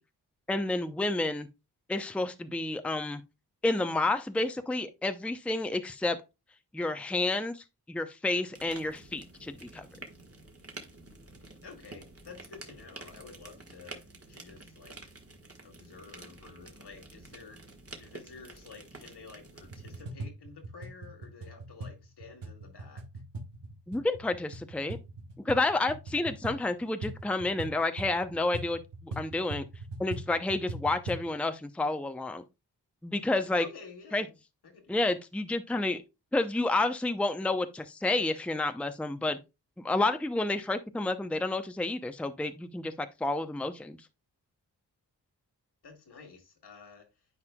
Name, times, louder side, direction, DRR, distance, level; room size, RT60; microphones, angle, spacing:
voice 1, 0.5-1.5 1.9-3.2 3.6-6.2 6.7-9.9 23.9-25.0 25.5-29.6 30.0-32.4 33.0-33.7 34.1-34.2 34.9-36.0 36.3-39.4 39.8-42.9 43.2-44.0, left 2 dB, 5° left, 0.6 m, -30 dB
sound 1, 8.5-20.0, right 2 dB, 35° right, 1.7 m, -49 dB
voice 2, 11.6-15.0 15.6-17.6 18.0-23.0 33.6-34.4 34.6-35.1 45.8-47.1, left 4 dB, 70° left, 1.9 m, -50 dB
sound 2, 19.6-31.3, right 2 dB, 80° right, 1.4 m, -42 dB
9.7 x 4.3 x 2.3 m
cardioid pair, 45°, 41 cm